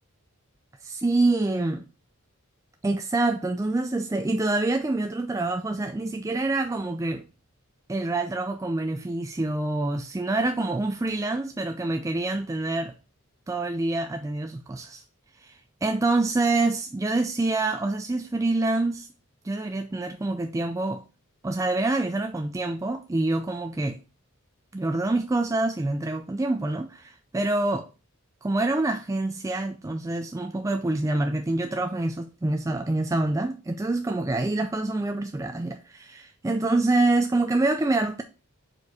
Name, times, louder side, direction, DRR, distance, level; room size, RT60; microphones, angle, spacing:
voice 1, 0.8-1.8 2.8-7.2 7.9-12.9 13.5-15.0 15.4-19.1 19.4-21.0 21.4-24.0 24.7-27.9 28.4-38.2, right 2 dB, 15° right, 0.3 m, -26 dB
4.7 x 4.4 x 4.6 m
head